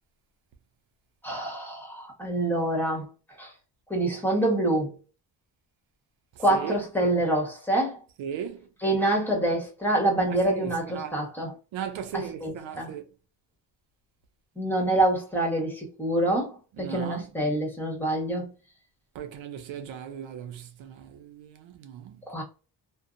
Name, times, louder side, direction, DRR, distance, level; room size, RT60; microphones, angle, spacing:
voice 1, 1.2-3.1 3.4-3.5 3.9-4.9 6.4-8.0 8.8-11.5 12.1-12.9 14.6-18.5 22.3-22.4, right 1 dB, 5° left, 1.2 m, -26 dB
voice 2, 6.4-6.8 8.2-8.7 10.4-11.2 11.7-13.1 16.8-17.3 19.1-22.4, right 8 dB, 85° right, 0.6 m, -37 dB
2.5 x 2.1 x 2.5 m
cardioid pair, 75°, 45 cm